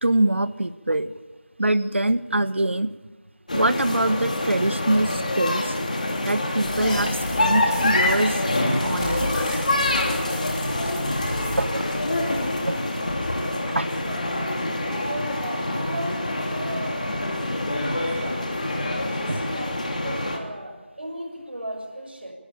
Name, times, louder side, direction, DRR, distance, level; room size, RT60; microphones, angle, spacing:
voice 1, 0.0-1.1 1.6-2.9 3.5-5.8 6.2-7.1 7.4-8.4 8.8-9.5 11.6-11.8 12.6-12.8 13.7-13.9 19.3-19.4, right 1 dB, 75° right, 15 dB, 1.2 m, -24 dB
sound 1, 3.5-20.4, left 1 dB, 40° left, 3.1 m, -26 dB
sound 2, 6.6-11.7, left 1 dB, 15° left, 4.0 m, -34 dB
voice 2, 13.0-14.3 14.7-17.0 17.6-22.3, right 1 dB, 60° right, 2 dB, 6.8 m, -36 dB
29.0 x 13.5 x 9.0 m, 1.3 s
figure-of-eight pair, 175°, 6 cm